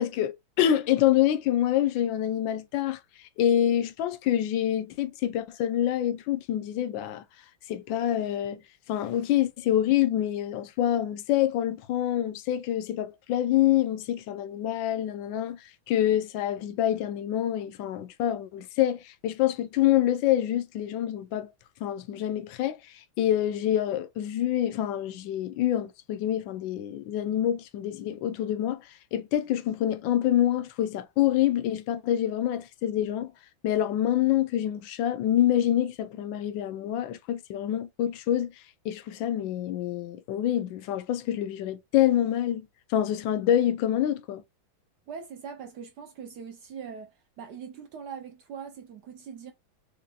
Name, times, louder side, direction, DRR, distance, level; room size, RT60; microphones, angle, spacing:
voice 1, 0.0-3.0 3.4-7.2 7.7-8.6 8.9-21.5 21.8-22.8 23.2-28.8 29.1-33.3 33.6-38.5 38.8-44.4, left 11 dB, 75° left, 1.2 m, -26 dB
voice 2, 45.1-49.5, right 6 dB, 70° right, 1.0 m, -41 dB
5.1 x 2.8 x 2.3 m
omnidirectional pair, 2.2 m